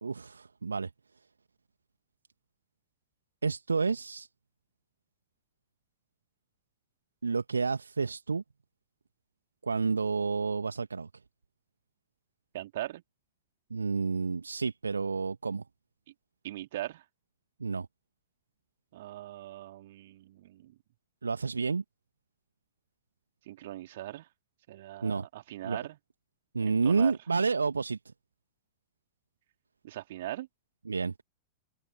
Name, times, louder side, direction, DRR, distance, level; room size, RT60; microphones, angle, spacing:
voice 1, 0.0-0.9 3.4-4.3 7.2-8.4 9.6-11.1 13.7-15.6 17.6-17.9 21.2-21.8 25.0-25.3 25.6-25.8 26.5-28.0 30.9-31.1, right 4 dB, 75° right, 1.8 m, -30 dB
voice 2, 12.5-13.0 16.4-17.0 18.9-20.7 23.5-24.3 24.7-26.0 26.6-27.2 29.8-30.5, right 14 dB, 55° right, 3.2 m, -40 dB
figure-of-eight pair, 90°, 0 cm